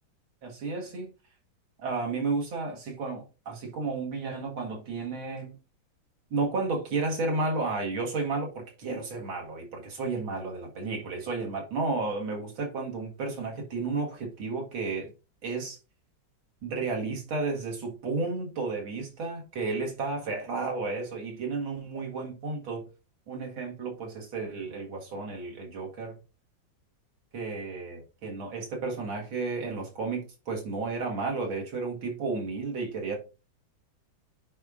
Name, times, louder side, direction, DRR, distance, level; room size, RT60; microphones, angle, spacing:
voice 1, 0.4-1.1 1.8-5.6 6.3-15.1 15.4-15.8 16.6-22.9 23.3-26.2 27.3-33.2, right 3 dB, 80° right, 2.6 m, -32 dB
10.5 x 4.9 x 2.5 m
omnidirectional pair, 2.2 m